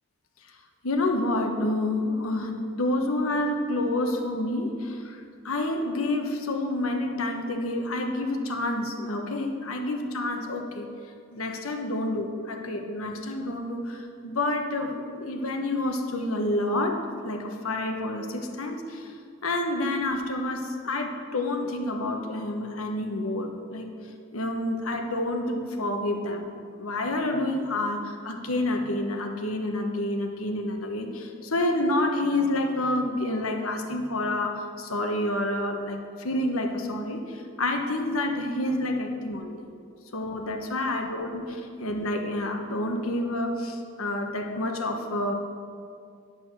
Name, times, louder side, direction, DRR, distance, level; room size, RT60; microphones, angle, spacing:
voice 1, 0.8-10.9 11.3-19.2 19.4-23.9 24.3-39.7 40.1-45.3, left 1 dB, 80° left, 4 dB, 1.2 m, -28 dB
9.0 x 8.4 x 6.1 m, 2.2 s
head